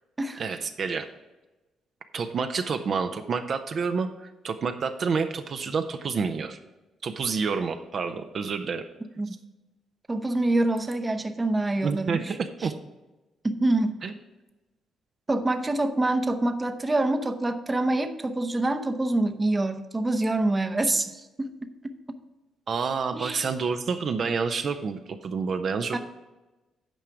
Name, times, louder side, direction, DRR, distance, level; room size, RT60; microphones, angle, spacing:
voice 1, 0.4-1.1 2.1-6.6 7.0-8.8 11.8-12.7 14.0-14.1 22.7-26.0, right 5 dB, 55° right, 7 dB, 0.6 m, -28 dB
voice 2, 10.1-12.4 13.4-14.0 15.3-21.5 23.1-23.4 25.9-26.0, right 2 dB, 20° right, 8 dB, 0.7 m, -26 dB
9.1 x 4.9 x 5.8 m, 1.1 s
cardioid pair, 90°, 0 cm